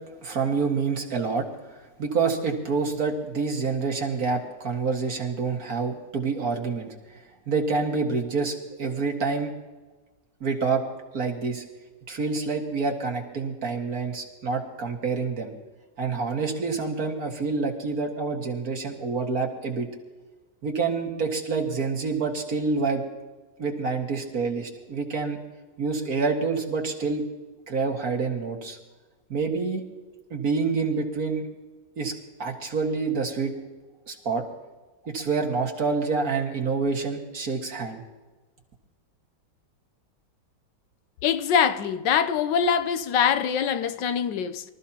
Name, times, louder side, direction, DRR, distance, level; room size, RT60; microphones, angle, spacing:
voice 1, 0.2-9.5 10.4-10.8 11.1-11.6 12.1-15.5 16.0-19.9 20.6-23.0 23.6-25.4 25.8-27.2 27.7-28.8 29.3-29.8 30.3-31.5 32.0-32.1 32.4-33.5 34.1-34.4 35.0-38.0, right 4 dB, 55° right, 2.4 m, -27 dB
voice 2, 41.2-44.6, left 7 dB, 85° left, 1.4 m, -23 dB
25.0 x 14.0 x 2.9 m
omnidirectional pair, 1.9 m